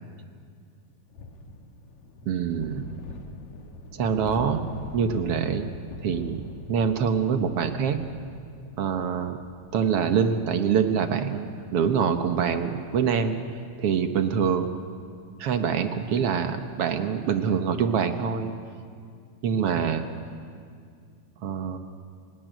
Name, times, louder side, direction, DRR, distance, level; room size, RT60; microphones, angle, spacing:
sound 1, 1.1-16.9, left 3 dB, 75° left, 2.9 m, -44 dB
voice 1, 2.3-2.9 3.9-4.6 4.9-5.7 6.0-6.4 6.7-8.0 8.8-9.4 9.7-13.4 13.8-14.7 15.4-18.5 19.4-20.1 21.4-21.8, right 7 dB, 60° right, 7 dB, 2.0 m, -25 dB
29.5 x 19.0 x 9.2 m, 2.2 s
omnidirectional pair, 3.3 m